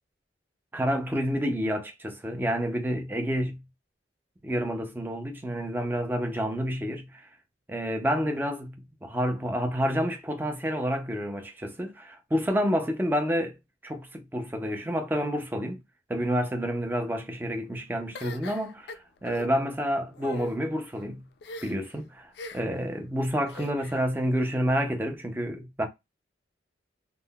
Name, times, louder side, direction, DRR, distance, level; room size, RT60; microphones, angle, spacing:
voice 1, 0.7-3.6 4.4-7.3 7.7-13.6 13.8-15.8 16.1-21.3 21.6-25.9, equal, 10° right, 0.4 m, -29 dB
sound 1, 18.1-19.5 20.1-20.5 21.4-21.9 22.3-22.8 23.5-24.0, left 3 dB, 60° left, 0.3 m, -41 dB
3.6 x 2.0 x 2.2 m
head